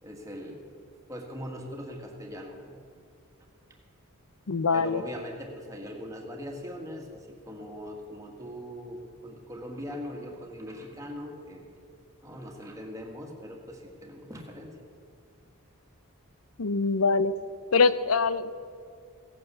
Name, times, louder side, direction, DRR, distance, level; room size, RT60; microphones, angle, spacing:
voice 1, 0.0-0.6 1.1-2.8 4.7-11.7 12.2-14.7, equal, 15° right, 1 dB, 1.8 m, -41 dB
voice 2, 4.5-5.0 16.6-17.3 17.7-18.6, left 4 dB, 75° left, 15 dB, 0.6 m, -24 dB
16.5 x 9.0 x 6.9 m, 2.3 s
head